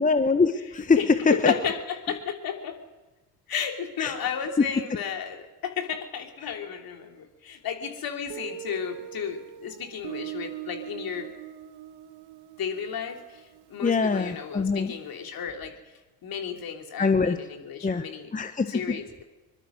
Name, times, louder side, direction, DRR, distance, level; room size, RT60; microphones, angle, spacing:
voice 1, 0.0-1.0 1.3-1.5 4.0-4.1 4.6-4.7 13.8-14.9 17.0-17.4 17.8-18.0 18.3-19.0, left 4 dB, 15° left, 10 dB, 1.2 m, -23 dB
voice 2, 0.9-2.8 3.5-11.3 12.6-15.7 16.2-18.3 18.7-19.2, left 7 dB, 45° left, 4 dB, 3.2 m, -33 dB
Guitar, 8.3-15.0, right 13 dB, 55° right, 1.5 m, -42 dB
23.0 x 21.5 x 6.4 m, 1.1 s
figure-of-eight pair, 55°, 47 cm